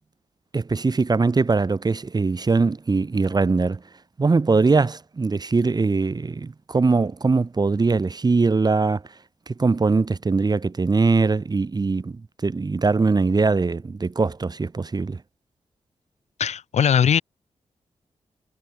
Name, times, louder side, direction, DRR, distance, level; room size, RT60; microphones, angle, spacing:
voice 1, 0.5-3.8 4.2-9.0 9.5-15.2, right 4 dB, 35° right, 1.6 m, -21 dB
voice 2, 16.4-17.2, left 8 dB, 75° left, 1.5 m, -19 dB
cardioid pair, 65°, 12 cm